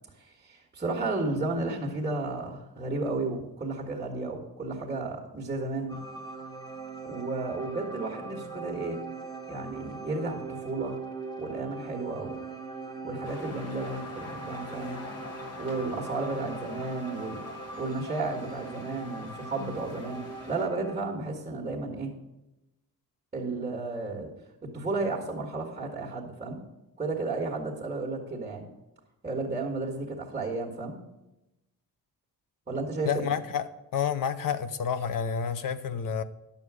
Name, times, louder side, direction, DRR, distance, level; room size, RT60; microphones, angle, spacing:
voice 1, 0.2-6.0 7.0-9.0 9.5-11.0 11.4-12.3 13.0-15.0 15.6-17.4 17.8-20.2 20.5-22.1 23.3-24.3 24.7-26.6 27.0-28.6 29.2-31.0 32.7-33.3, right 3 dB, 20° right, -3 dB, 1.5 m, -33 dB
sound 1, 5.9-21.0, right 4 dB, 10° left, 1.1 m, -41 dB
sound 2, 13.2-20.7, left 3 dB, 45° left, 1.0 m, -45 dB
voice 2, 33.0-33.7 33.9-36.2, left 7 dB, 65° left, 12 dB, 0.7 m, -29 dB
11.0 x 7.1 x 4.9 m, 0.93 s
wide cardioid pair, 170°, 36 cm